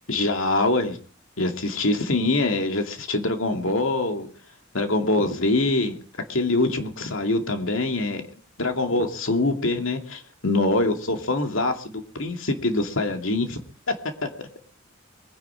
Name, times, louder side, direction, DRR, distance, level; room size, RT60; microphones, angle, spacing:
voice 1, 0.1-1.0 1.4-4.3 4.7-5.9 6.3-8.2 8.6-13.6, left 2 dB, 85° left, 5 dB, 2.5 m, -24 dB
22.0 x 10.5 x 5.0 m, 0.41 s
head